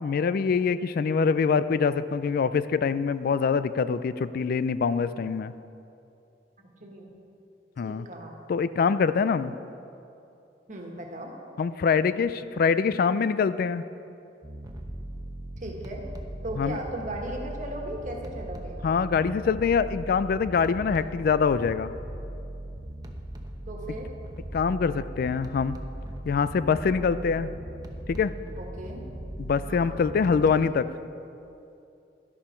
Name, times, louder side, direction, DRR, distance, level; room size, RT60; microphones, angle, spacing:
voice 1, 0.0-5.5 7.8-8.1 8.5-9.5 11.6-13.8 16.6-16.8 18.8-21.9 24.5-25.8 26.3-27.5 28.1-28.3 29.4-30.9, left 5 dB, 55° left, 14 dB, 0.3 m, -24 dB
voice 2, 6.8-7.1 7.8-8.4 10.7-11.3 15.6-16.0 16.4-18.8 23.7-24.1 27.1-27.3 28.6-29.0 29.7-30.0, right 1 dB, 45° right, 0 dB, 1.6 m, -37 dB
sound 1, 14.4-30.5, right 1 dB, 20° right, 0.8 m, -39 dB
11.5 x 11.0 x 4.4 m, 2.7 s
head